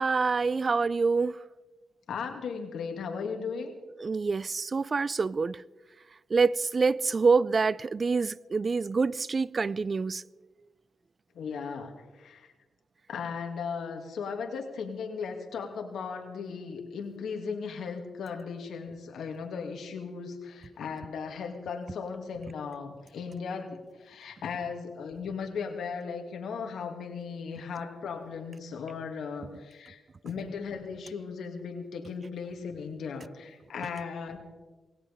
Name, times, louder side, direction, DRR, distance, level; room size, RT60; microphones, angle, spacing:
voice 1, 0.0-1.4 4.0-5.6 6.3-10.2, right 4 dB, 45° right, 0.4 m, -26 dB
voice 2, 2.1-3.7 11.3-12.5 13.1-34.4, left 5 dB, 80° left, 2.4 m, -37 dB
19.5 x 17.0 x 3.6 m
cardioid pair, 65°, 0 cm